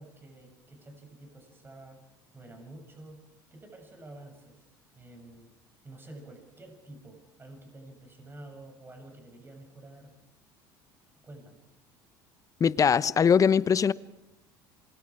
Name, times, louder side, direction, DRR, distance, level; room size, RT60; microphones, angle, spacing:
voice 1, 0.0-2.1 2.3-3.2 3.5-5.5 5.8-10.2 11.2-11.6, right 2 dB, 20° right, 7.0 m, -49 dB
voice 2, 12.6-13.9, left 7 dB, 35° left, 0.8 m, -21 dB
27.0 x 22.5 x 4.9 m
hypercardioid pair, 80°, 10 cm